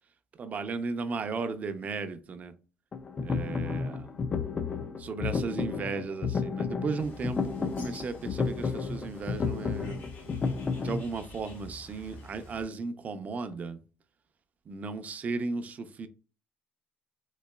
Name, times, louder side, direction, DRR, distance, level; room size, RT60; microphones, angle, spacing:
voice 1, 0.4-2.5 3.2-4.2 5.0-10.0 10.8-13.8 14.7-16.1, right 4 dB, 40° right, 0.5 m, -35 dB
sound 1, 2.9-11.0, left 5 dB, 30° left, 0.4 m, -32 dB
Bird, 7.0-12.6, equal, 75° left, 1.6 m, -49 dB
3.9 x 2.8 x 2.2 m
cardioid pair, 105°, 4 cm